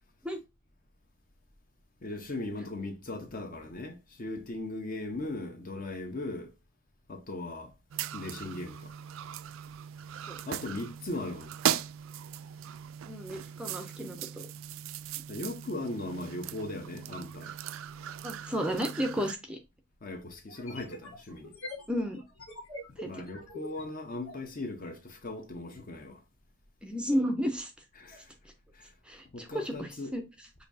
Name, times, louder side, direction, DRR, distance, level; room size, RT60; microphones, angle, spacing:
voice 1, 2.0-6.5 7.1-7.7 8.1-8.9 10.5-11.5 15.3-17.5 20.0-21.5 23.0-26.2 28.0-28.3 28.7-28.9 29.3-30.1, left 2 dB, 40° left, 0.8 m, -38 dB
sound 1, 7.9-19.3, right 10 dB, 70° right, 0.3 m, -38 dB
voice 2, 13.1-14.5 18.2-19.6 21.9-22.2 23.0-23.1 26.8-27.7 29.1-30.2, equal, 5° right, 0.5 m, -32 dB
sound 2, 20.5-24.5, left 1 dB, 90° left, 1.7 m, -45 dB
6.6 x 2.7 x 2.6 m
head